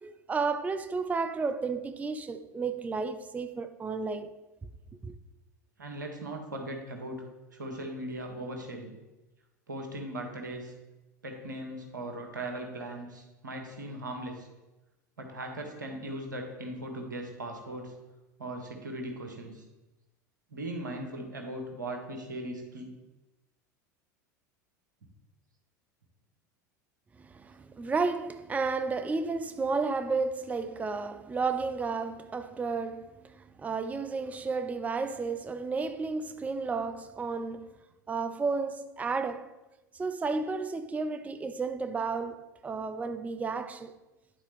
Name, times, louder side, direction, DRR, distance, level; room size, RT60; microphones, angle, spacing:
voice 1, 0.0-4.3 5.0-5.1 27.2-37.7 38.1-39.5 39.9-43.9, right 4 dB, 15° right, 0.5 m, -32 dB
voice 2, 5.8-7.2 7.5-8.9 9.7-10.7 11.2-14.5 15.2-17.9 18.4-19.6 20.5-22.9, right 1 dB, 85° right, 1.2 m, -39 dB
10.5 x 4.1 x 3.5 m
figure-of-eight pair, 75°, 10 cm